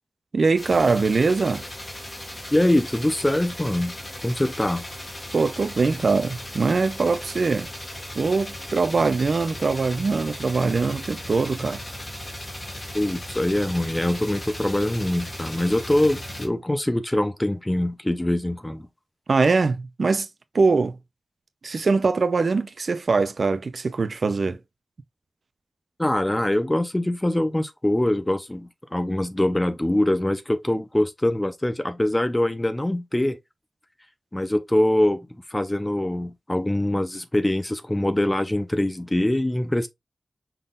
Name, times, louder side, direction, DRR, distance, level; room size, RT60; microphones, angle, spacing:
voice 1, 0.3-1.6 5.3-7.7 8.1-11.8 19.3-20.3 20.5-21.0 21.6-24.6, right 4 dB, 75° right, 0.6 m, -22 dB
sound 1, 0.6-16.5, left 1 dB, 35° left, 2.1 m, -37 dB
voice 2, 2.5-3.9 4.2-4.8 12.9-18.8 26.0-33.4 34.3-39.9, left 1 dB, 15° left, 0.7 m, -23 dB
5.6 x 3.9 x 2.4 m
wide cardioid pair, 90°, 0 cm